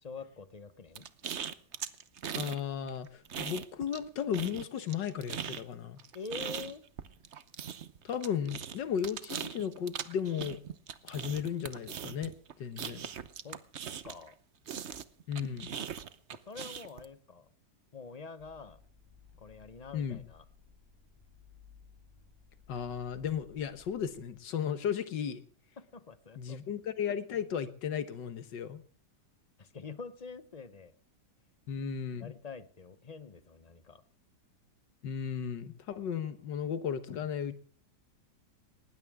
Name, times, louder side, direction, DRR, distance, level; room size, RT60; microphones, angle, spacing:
voice 1, 0.0-1.1 6.1-6.9 13.4-13.6 14.0-14.4 16.3-17.5 17.9-18.8 19.4-20.4 25.8-26.6 29.6-30.9 32.1-34.0, left 4 dB, 30° left, 13 dB, 0.7 m, -46 dB
sound 1, 0.9-2.6 2.9-4.1 4.3-14.3 14.7-17.0, right 8 dB, 50° right, 1.0 m, -40 dB
voice 2, 2.3-6.0 8.0-10.6 11.0-12.3 12.6-13.0 15.3-15.7 19.9-20.2 22.7-25.4 26.4-28.8 31.7-32.3 35.0-37.5, left 8 dB, 85° left, 11 dB, 1.8 m, -35 dB
sound 2, 18.4-24.3, left 6 dB, 15° left, 3.8 m, -59 dB
19.5 x 19.0 x 3.6 m, 0.40 s
omnidirectional pair, 1.9 m